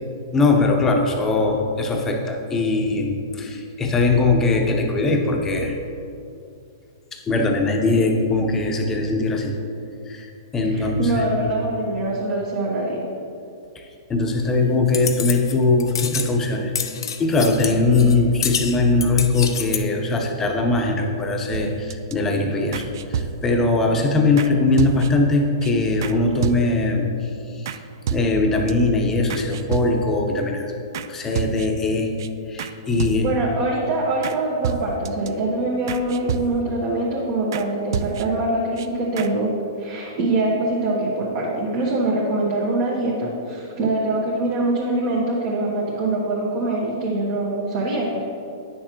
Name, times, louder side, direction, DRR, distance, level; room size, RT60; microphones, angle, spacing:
voice 1, 0.3-5.8 7.1-9.6 10.1-10.3 10.5-11.5 13.7-13.8 14.1-27.7 28.1-30.7 31.1-32.1 32.5-33.3, left 3 dB, 15° left, 2 dB, 0.9 m, -21 dB
voice 2, 10.7-13.0 33.2-39.5 39.8-48.4, right 2 dB, 45° right, -6 dB, 1.5 m, -24 dB
sound 1, 14.9-15.5 15.8-16.3 16.7-18.2 18.4-19.8, left 7 dB, 80° left, 0.6 m, -28 dB
sound 2, 21.5-22.1 22.7-23.7 24.4-24.5 24.8-25.3 25.6-25.7 26.0-26.2 26.4-26.9 27.6-27.8 28.1-28.7 29.3-30.2 30.9-31.1 31.3-31.9 32.2-32.3 32.6-32.7 33.0-33.5 34.2-34.4 34.6-35.3 35.9-36.8 37.5-37.7 37.9-38.5 38.8-38.9 39.2-39.3, right 7 dB, 60° right, 0.4 m, -29 dB
9.2 x 6.4 x 3.0 m, 2.6 s
hypercardioid pair, 135°, 2 cm